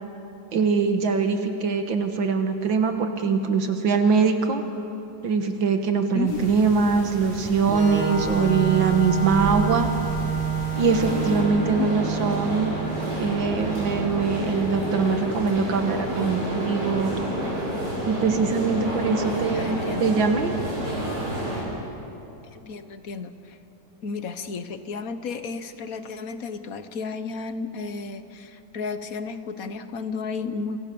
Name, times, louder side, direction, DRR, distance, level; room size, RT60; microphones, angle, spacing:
voice 1, 0.5-4.6 5.2-9.9 10.8-12.7 13.2-17.2 18.1-20.6, right 5 dB, 80° right, 6 dB, 2.2 m, -23 dB
sound 1, 6.3-11.4, left 1 dB, 75° left, 7.5 m, -36 dB
Organ, 7.7-15.2, right 7 dB, 5° right, 2.9 m, -29 dB
sound 2, 10.7-21.6, right 1 dB, 60° right, 7.4 m, -29 dB
voice 2, 19.5-20.2 22.5-23.6 24.0-30.8, left 4 dB, 50° left, 10 dB, 1.4 m, -33 dB
28.0 x 25.0 x 7.0 m, 2.9 s
omnidirectional pair, 2.1 m